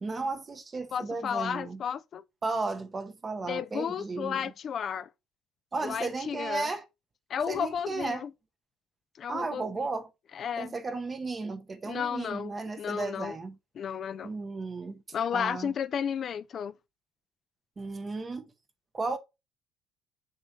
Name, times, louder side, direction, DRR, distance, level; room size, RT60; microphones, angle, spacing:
voice 1, 0.0-1.8 2.4-4.5 5.7-6.8 7.5-8.3 9.3-10.1 10.6-13.6 14.2-15.0 15.3-15.7 17.8-18.5 18.9-19.2, right 3 dB, 25° right, 0.8 m, -34 dB
voice 2, 0.9-2.2 3.5-5.1 5.8-6.7 7.3-8.3 9.2-9.7 10.3-10.7 11.9-13.4 13.8-14.3 15.1-16.7, left 8 dB, 40° left, 0.3 m, -33 dB
7.0 x 6.8 x 2.7 m
cardioid pair, 130°, 0 cm